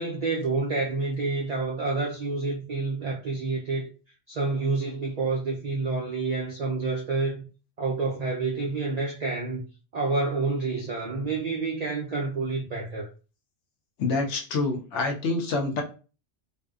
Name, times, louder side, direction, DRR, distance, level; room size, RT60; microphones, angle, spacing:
voice 1, 0.0-3.9 4.3-7.4 7.8-9.6 9.9-13.1, right 3 dB, 90° right, 0.3 m, -28 dB
voice 2, 14.0-15.8, left 3 dB, 70° left, 0.9 m, -27 dB
2.6 x 2.1 x 2.3 m
omnidirectional pair, 1.3 m